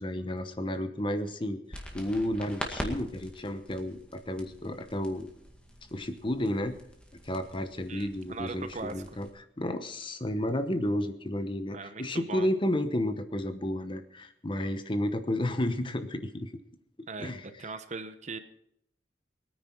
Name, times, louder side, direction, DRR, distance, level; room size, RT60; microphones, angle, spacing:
voice 1, 0.0-5.3 5.9-6.8 7.2-9.3 9.6-16.5 17.0-17.7, left 1 dB, 30° left, 9 dB, 1.0 m, -32 dB
sound 1, 1.7-9.3, equal, 5° left, 2.0 m, -44 dB
voice 2, 7.9-9.0 11.7-12.5 17.1-18.4, right 3 dB, 40° right, 10 dB, 1.0 m, -40 dB
21.5 x 9.7 x 4.6 m, 0.78 s
head